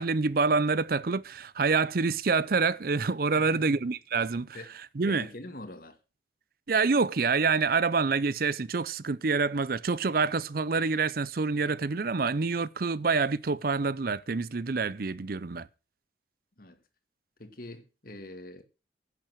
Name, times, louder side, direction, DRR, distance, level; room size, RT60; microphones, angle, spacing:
voice 1, 0.0-4.6 5.0-5.3 6.7-15.7, right 4 dB, 55° right, 0.6 m, -27 dB
voice 2, 3.4-3.8 4.5-4.7 5.1-6.0 16.6-16.8 17.4-18.6, left 1 dB, 50° left, 2.0 m, -44 dB
10.5 x 8.9 x 6.3 m
head